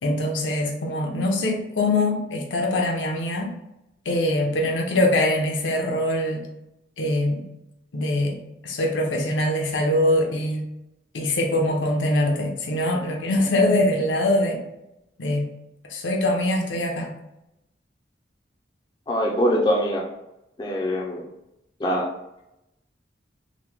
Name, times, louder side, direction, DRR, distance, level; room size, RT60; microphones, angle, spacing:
voice 1, 0.0-3.5 4.1-6.5 7.0-7.4 7.9-8.4 8.6-10.6 11.1-14.6 15.2-15.5 15.9-17.1, left 1 dB, 90° left, 1 dB, 0.6 m, -23 dB
voice 2, 19.1-20.0 20.6-21.2 21.8-22.1, equal, 25° left, -1 dB, 0.4 m, -23 dB
3.0 x 2.1 x 3.4 m, 0.88 s
head